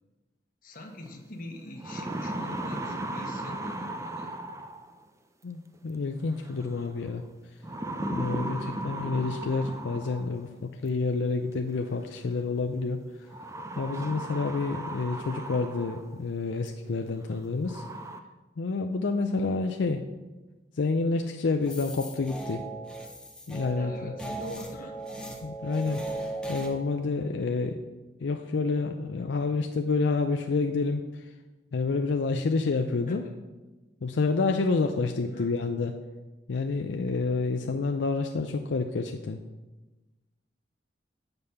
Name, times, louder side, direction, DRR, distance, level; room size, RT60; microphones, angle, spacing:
voice 1, 0.6-4.4 8.6-8.8 23.7-25.0 33.1-33.4 35.2-35.5, left 1 dB, 50° left, 2 dB, 1.3 m, -43 dB
sound 1, 1.1-1.2 1.6-5.0 6.4-6.8 7.6-10.4 11.7-11.8 13.3-16.2 16.7-16.8 17.3-17.4 17.7-18.2, right 1 dB, 15° right, 0.5 m, -36 dB
voice 2, 5.4-7.2 8.1-13.0 13.8-17.8 18.6-20.0 20.8-22.6 23.5-23.9 25.4-26.2 26.5-27.8 28.2-31.0 31.7-33.2 34.0-35.9 36.5-39.4, left 3 dB, 80° left, 5 dB, 0.5 m, -28 dB
sound 2, 21.6-26.7, right 2 dB, 5° left, 0.9 m, -37 dB
8.0 x 5.3 x 5.7 m, 1.1 s
head